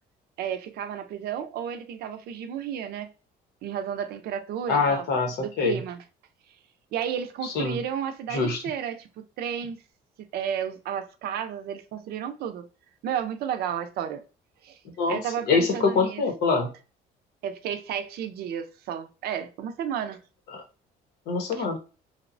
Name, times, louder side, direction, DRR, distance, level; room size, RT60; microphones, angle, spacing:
voice 1, 0.4-3.1 3.6-5.0 5.4-6.0 6.9-9.8 10.2-12.6 13.0-14.2 14.6-14.8 15.1-16.2 17.4-20.2 21.5-21.7, right 8 dB, 70° right, 0.4 m, -32 dB
voice 2, 4.7-5.8 7.4-7.8 8.3-8.6 15.0-15.2 15.5-16.7 20.5-20.6 21.3-21.8, left 4 dB, 75° left, 0.8 m, -24 dB
2.9 x 2.0 x 2.5 m
cardioid pair, 110°, 17 cm